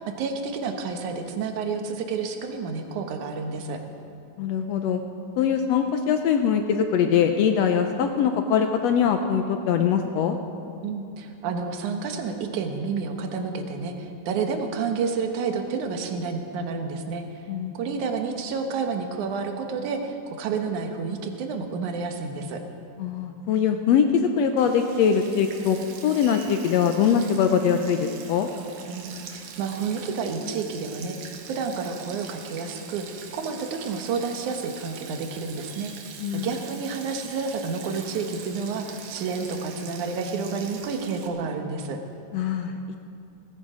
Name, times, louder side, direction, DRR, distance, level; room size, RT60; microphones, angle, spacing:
voice 1, 0.0-3.8 10.8-17.2 17.7-22.6 28.9-31.2 31.5-33.1 33.3-35.9 36.3-42.0, right 5 dB, 65° right, 4 dB, 2.5 m, -30 dB
voice 2, 4.4-5.0 5.4-10.4 17.5-17.8 23.0-25.8 26.0-28.5 36.2-36.5 42.3-42.8, left 7 dB, 85° left, 6 dB, 1.4 m, -22 dB
Sink (filling or washing), 24.6-41.3, right 6 dB, 85° right, 3.0 m, -43 dB
18.0 x 16.0 x 5.0 m, 2.5 s
omnidirectional pair, 3.9 m